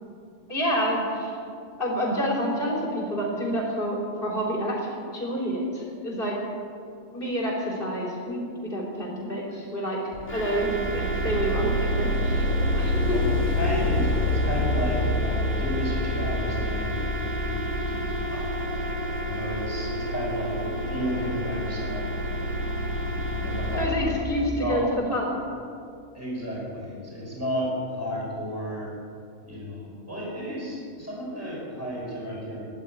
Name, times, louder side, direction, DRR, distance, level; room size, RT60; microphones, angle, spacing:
voice 1, 0.5-1.3 1.8-6.4 7.1-10.0 10.3-13.2 23.8-25.4, equal, 40° left, -2 dB, 4.0 m, -28 dB
sound 1, 10.1-23.8, equal, 10° left, 2.8 m, -27 dB
voice 2, 13.1-18.5 19.2-22.1 23.3-24.8 26.1-28.9 29.5-32.7, equal, 10° right, -4 dB, 5.2 m, -33 dB
13.5 x 11.0 x 9.3 m, 2.4 s
omnidirectional pair, 1.5 m